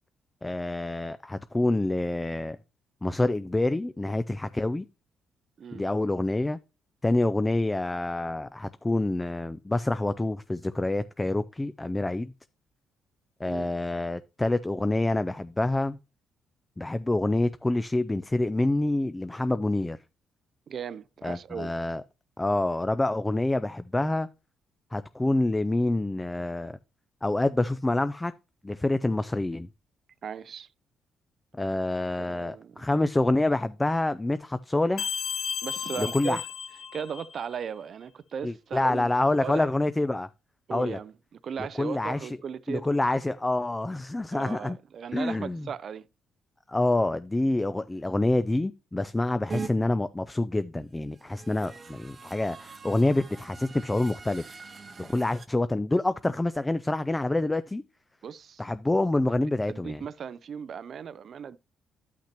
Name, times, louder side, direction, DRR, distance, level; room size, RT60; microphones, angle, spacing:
voice 1, 0.4-2.6 3.0-4.9 5.7-6.6 7.0-12.3 13.4-16.0 16.8-20.0 21.2-22.0 22.4-24.3 24.9-26.8 27.2-28.3 28.6-29.7 31.5-35.1 36.0-36.4 38.4-40.3 40.7-41.0 41.8-42.3 42.7-44.8 45.1-45.6 46.7-54.4 55.0-57.8 58.6-60.0, left 2 dB, 15° left, 0.3 m, -27 dB
voice 2, 20.7-21.7 30.2-30.7 32.2-32.9 35.6-36.4 36.9-39.1 39.4-39.7 40.7-42.9 44.3-46.1 58.2-58.6 59.3-59.4 59.7-61.6, right 7 dB, 55° right, 0.4 m, -37 dB
sound 1, 35.0-37.5, left 8 dB, 70° left, 0.9 m, -34 dB
sound 2, 49.5-49.7 51.1-55.5, right 4 dB, 35° right, 0.7 m, -42 dB
11.5 x 5.9 x 2.9 m
cardioid pair, 90°, 0 cm